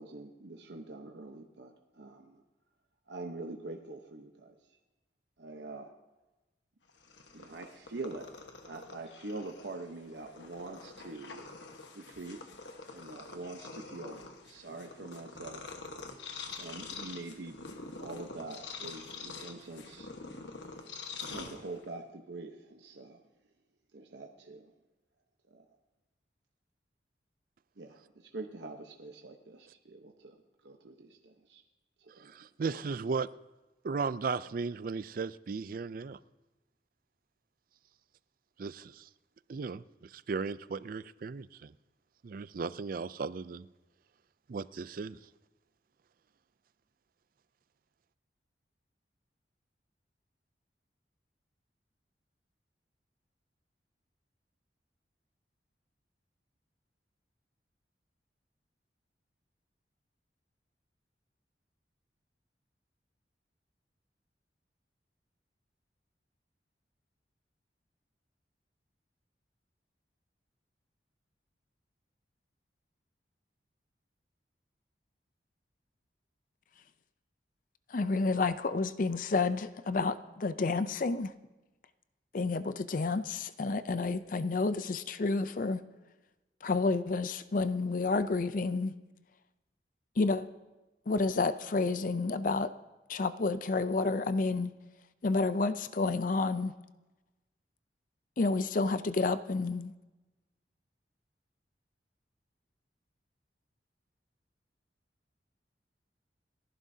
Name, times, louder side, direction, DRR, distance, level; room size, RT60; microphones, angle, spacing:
voice 1, 0.0-2.4 3.1-4.6 5.4-5.9 7.3-8.3 8.6-11.5 11.9-12.4 12.9-15.8 16.6-17.6 18.0-20.1 21.2-23.2 23.9-24.7 25.5-25.6 27.8-31.6 32.0-32.3 32.7-32.8, right 2 dB, 75° right, 1.0 m, -44 dB
Purr, 6.9-22.0, left 4 dB, 85° left, 1.3 m, -46 dB
voice 2, 32.3-33.3 33.8-36.2 38.6-39.1 39.5-41.7 42.2-43.7 44.5-45.2, right 4 dB, 50° right, 0.4 m, -36 dB
voice 3, 77.9-81.3 82.3-85.8 86.6-88.9 90.2-90.5 91.1-92.7 93.1-94.7 95.2-96.7 98.4-99.9, left 3 dB, 50° left, 0.5 m, -30 dB
30.0 x 11.0 x 2.8 m
head